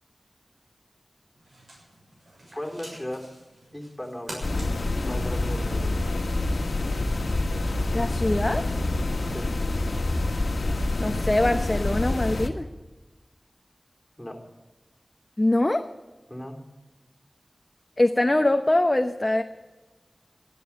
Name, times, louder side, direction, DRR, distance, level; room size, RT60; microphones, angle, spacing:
sound 1, 1.3-8.9, right 1 dB, 80° right, 6.9 m, -48 dB
voice 1, 2.5-3.3 3.7-5.9 9.3-9.5 14.2-14.4 16.3-16.6, left 1 dB, 10° left, 1 dB, 3.8 m, -37 dB
sound 2, 4.4-12.5, left 2 dB, 90° left, 1.6 m, -27 dB
voice 2, 7.9-8.7 11.0-12.6 15.4-15.9 18.0-19.4, left 1 dB, 35° left, 6 dB, 0.9 m, -23 dB
13.0 x 11.5 x 8.5 m, 1.2 s
wide cardioid pair, 45°, 0 cm